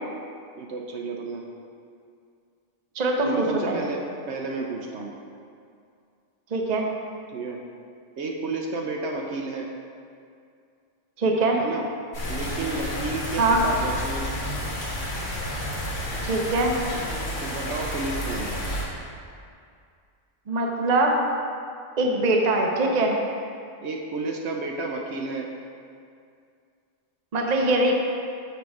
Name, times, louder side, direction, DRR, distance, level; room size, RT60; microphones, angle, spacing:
voice 1, 0.6-1.4 3.2-4.0 4.3-5.1 7.3-7.6 8.2-9.7 11.6-11.9 12.3-14.3 17.4-18.6 23.8-25.5, right 3 dB, 70° right, 0 dB, 0.9 m, -31 dB
voice 2, 2.9-3.9 6.5-6.9 11.2-11.6 13.4-13.6 16.2-16.7 20.5-21.1 22.0-23.2 27.3-28.1, right 2 dB, 40° right, 1 dB, 0.8 m, -22 dB
sound 1, 12.1-18.8, equal, 85° left, 1.9 m, -30 dB
6.8 x 5.8 x 4.7 m, 2.3 s
omnidirectional pair, 1.3 m